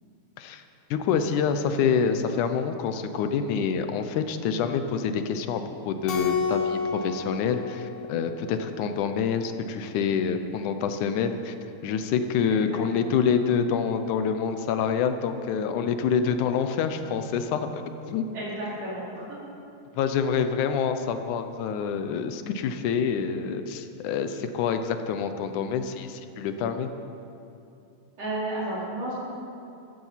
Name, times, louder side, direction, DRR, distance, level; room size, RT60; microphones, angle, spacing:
voice 1, 0.9-11.6 11.8-17.7 18.1-18.3 20.0-26.9, left 6 dB, 80° left, 8 dB, 2.3 m, -27 dB
Keyboard (musical), 6.1-8.7, left 5 dB, 60° left, 2.2 m, -30 dB
voice 2, 18.3-19.0 28.2-29.1, right 1 dB, 50° right, -7 dB, 5.6 m, -32 dB
15.5 x 14.0 x 5.7 m, 2.8 s
omnidirectional pair, 3.5 m